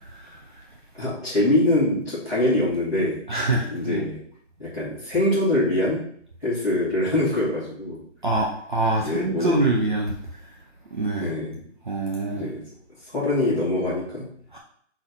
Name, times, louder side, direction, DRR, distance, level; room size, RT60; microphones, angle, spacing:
voice 1, 0.9-3.2 3.7-4.2 4.6-6.0 6.4-8.0 9.0-9.7 11.2-11.6 12.3-12.6 13.0-14.3, left 1 dB, 5° right, -15 dB, 1.3 m, -24 dB
voice 2, 3.3-4.1 8.2-10.2 10.9-11.3 11.9-12.5 14.5-14.6, right 2 dB, 40° right, -1 dB, 0.7 m, -25 dB
5.9 x 4.3 x 3.8 m, 0.62 s
hypercardioid pair, 175°, 38 cm